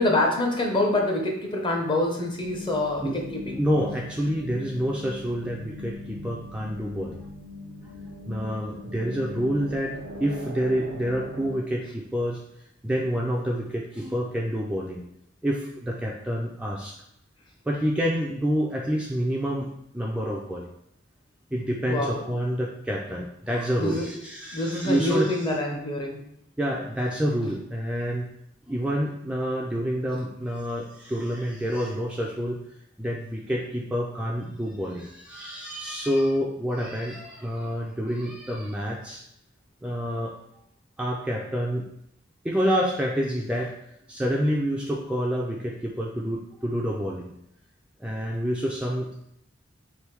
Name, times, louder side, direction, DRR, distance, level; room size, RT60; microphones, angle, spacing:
voice 1, 0.0-3.6 21.9-22.4 23.8-24.1 24.5-26.2, left 1 dB, 25° left, 1 dB, 0.7 m, -26 dB
sound 1, 2.4-11.6, left 1 dB, 70° right, 0.5 m, -40 dB
voice 2, 3.6-7.2 8.3-12.4 12.8-15.0 15.4-16.9 17.7-20.7 21.5-25.5 26.6-28.3 28.7-32.6 33.0-39.2 39.8-40.3 41.0-41.9 42.4-43.7 44.1-47.3 48.0-49.1, equal, 5° right, -3 dB, 0.3 m, -28 dB
3.4 x 2.6 x 4.4 m, 0.76 s
head